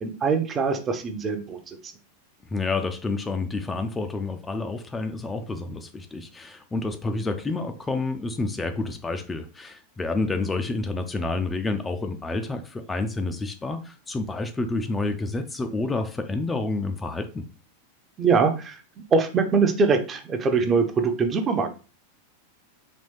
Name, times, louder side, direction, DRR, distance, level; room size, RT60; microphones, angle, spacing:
voice 1, 0.0-1.9 18.2-18.8 19.1-21.7, right 4 dB, 25° right, 0.7 m, -23 dB
voice 2, 2.5-17.4, left 3 dB, 15° left, 0.4 m, -29 dB
4.2 x 3.0 x 3.3 m
figure-of-eight pair, 90°, 0 cm